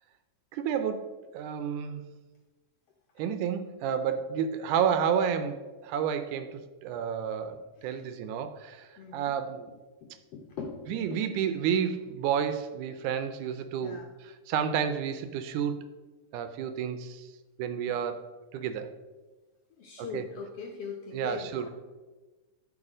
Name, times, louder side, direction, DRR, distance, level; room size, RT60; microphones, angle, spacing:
voice 1, 0.5-2.1 3.2-9.7 10.9-15.8 16.3-17.3 17.6-18.2 18.5-18.9 20.0-20.2 21.1-21.7, right 8 dB, 80° right, 10 dB, 2.0 m, -31 dB
voice 2, 7.5-8.1 8.4-8.5 9.0-9.4 10.0-11.3 13.8-14.1 19.7-21.7, left 5 dB, 70° left, 1 dB, 1.5 m, -42 dB
12.5 x 4.8 x 5.0 m, 1.2 s
omnidirectional pair, 3.7 m